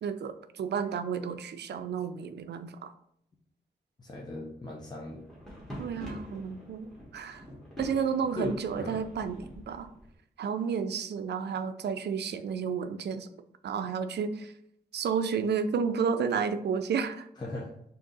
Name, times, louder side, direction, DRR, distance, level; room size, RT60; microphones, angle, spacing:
voice 1, 0.0-2.9 5.8-7.4 7.8-9.9 10.4-13.3 13.6-14.5 14.9-17.3, right 6 dB, 80° right, 9 dB, 0.4 m, -31 dB
voice 2, 4.0-5.2 7.5-7.6 8.4-9.0 17.4-17.7, left 2 dB, 25° left, -2 dB, 0.6 m, -38 dB
sound 1, 5.2-10.1, equal, 5° left, 1.3 m, -46 dB
3.6 x 2.8 x 3.9 m, 0.75 s
wide cardioid pair, 110°, 17 cm